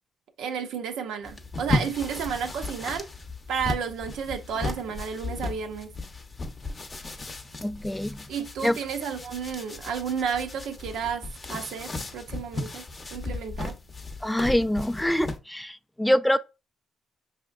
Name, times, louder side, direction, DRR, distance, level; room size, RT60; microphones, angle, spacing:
voice 1, 0.4-3.1 3.5-5.9 8.3-12.8 13.1-13.7, right 7 dB, 80° right, 0.6 m, -32 dB
sound 1, 1.2-15.4, left 2 dB, 30° left, 0.7 m, -35 dB
voice 2, 7.6-8.2 8.6-8.8 14.2-16.4, equal, 5° left, 0.3 m, -25 dB
5.6 x 2.8 x 2.4 m
cardioid pair, 90°, 0 cm